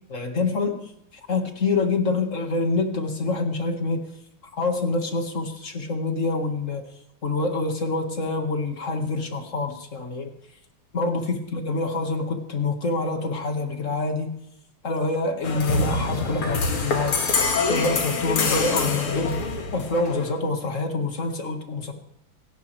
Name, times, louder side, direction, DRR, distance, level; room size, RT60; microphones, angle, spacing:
voice 1, 0.1-0.9 1.3-4.1 4.6-6.9 7.2-10.3 10.9-14.3 14.8-17.2 17.7-19.4 19.7-21.9, left 3 dB, 35° left, 5 dB, 2.0 m, -26 dB
sound 1, 15.4-20.4, left 4 dB, 85° left, 2.9 m, -25 dB
26.0 x 11.5 x 3.4 m, 0.82 s
omnidirectional pair, 2.3 m